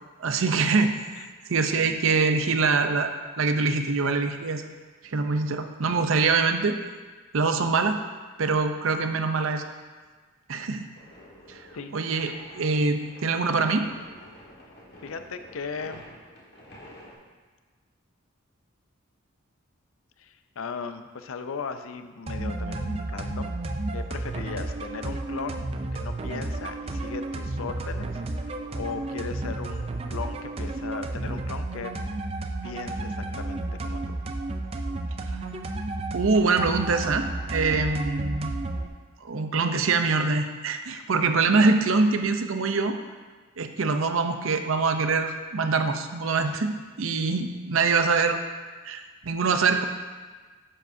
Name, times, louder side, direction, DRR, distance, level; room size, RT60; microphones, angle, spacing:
voice 1, 0.2-0.9 1.5-3.1 3.4-4.6 5.0-6.8 7.3-8.0 8.4-9.6 10.5-10.9 11.5-11.6 11.9-13.9 36.1-38.6 39.2-43.0 43.6-48.4 48.8-49.8, right 4 dB, 75° right, 7 dB, 0.6 m, -24 dB
sound 1, 10.9-17.1, left 1 dB, 50° left, 1.6 m, -49 dB
voice 2, 15.0-16.1 20.2-23.5 23.9-25.7 25.9-31.9 32.6-34.2, left 5 dB, 80° left, 9 dB, 0.5 m, -37 dB
Situation Beat, 22.3-38.9, right 2 dB, 30° right, 0.4 m, -32 dB
9.7 x 7.4 x 2.7 m, 1.4 s
head